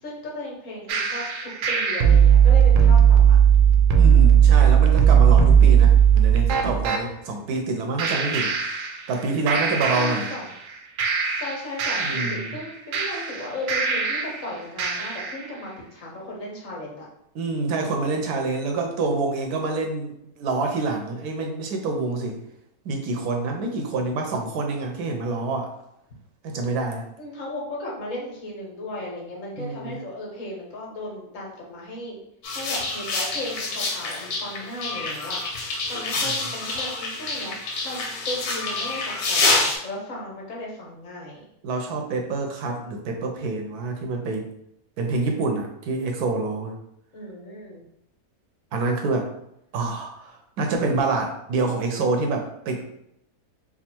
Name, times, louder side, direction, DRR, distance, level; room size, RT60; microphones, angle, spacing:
voice 1, 0.0-3.4 9.9-10.5 11.4-17.1 27.2-32.2 32.5-35.4 35.9-41.4 47.1-47.8, left 1 dB, 60° left, -3 dB, 1.4 m, -36 dB
sound 1, 0.9-7.0 8.0-9.2 9.5-10.7 11.0-14.4 14.8-15.4, right 8 dB, 65° right, 0.8 m, -18 dB
voice 2, 4.0-8.5 9.1-10.3 12.0-12.5 17.3-22.4 22.8-25.7 26.4-27.1 29.5-30.0 36.2-36.3 41.6-44.5 45.0-46.8 48.7-49.3 49.7-52.8, right 3 dB, 85° right, 3 dB, 1.2 m, -27 dB
sound 2, 32.4-39.8, left 3 dB, 80° left, 1.3 m, -27 dB
3.5 x 2.2 x 4.3 m, 0.78 s
omnidirectional pair, 1.6 m